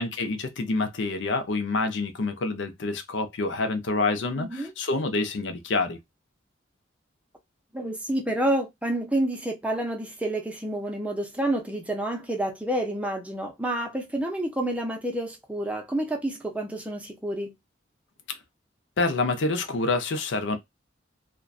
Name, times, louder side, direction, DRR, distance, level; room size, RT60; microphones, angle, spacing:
voice 1, 0.0-6.0 18.3-18.4 19.0-20.6, left 3 dB, 75° left, 0.5 m, -27 dB
voice 2, 4.4-4.7 7.7-17.5, right 1 dB, 5° right, 0.5 m, -29 dB
2.5 x 2.2 x 2.3 m
head